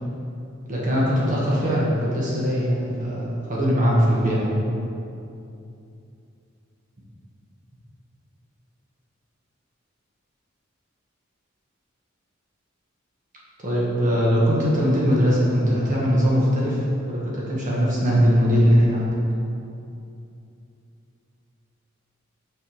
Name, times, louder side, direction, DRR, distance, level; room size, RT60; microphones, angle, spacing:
voice 1, 0.7-4.5 13.6-19.1, equal, 40° right, -6 dB, 1.2 m, -21 dB
6.1 x 4.9 x 4.7 m, 2.7 s
head